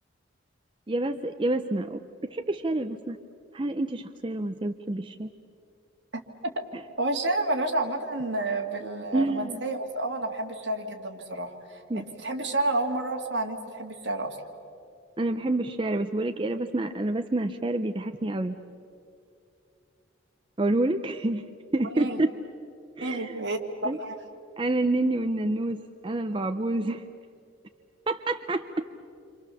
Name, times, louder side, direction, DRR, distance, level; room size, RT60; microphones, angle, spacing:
voice 1, 0.9-3.2 3.5-5.3 9.1-9.6 11.9-12.0 15.2-18.6 20.6-21.4 21.7-22.3 23.0-23.4 23.8-24.0 24.6-27.0 28.1-28.7, right 2 dB, 25° right, 7 dB, 0.5 m, -28 dB
voice 2, 6.1-6.5 7.0-14.4 21.8-22.2 23.0-23.6 24.0-24.2, right 2 dB, 65° right, 3 dB, 2.3 m, -30 dB
28.0 x 26.0 x 7.0 m, 2.6 s
head